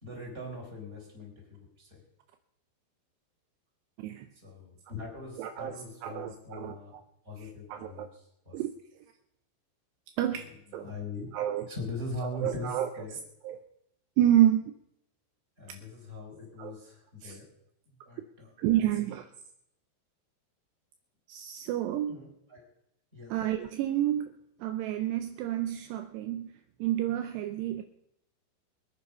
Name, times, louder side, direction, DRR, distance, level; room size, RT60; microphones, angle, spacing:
voice 1, 0.0-2.0 4.3-7.0 7.2-8.6 10.8-11.3 11.7-13.2 15.6-17.5 17.9-19.1 22.1-22.6 23.1-23.3, left 1 dB, 15° right, -1 dB, 4.0 m, -41 dB
voice 2, 5.4-5.7 6.0-7.0 7.4-8.1 8.5-8.7 10.2-10.9 11.3-11.7 12.4-12.9 13.4-13.6 14.2-14.7 15.7-15.8 16.6-16.7 17.2-17.4 18.6-19.3 21.3-22.2 23.3-26.5 26.8-27.8, right 12 dB, 85° right, 7 dB, 2.4 m, -29 dB
23.0 x 9.6 x 5.6 m, 0.78 s
omnidirectional pair, 5.7 m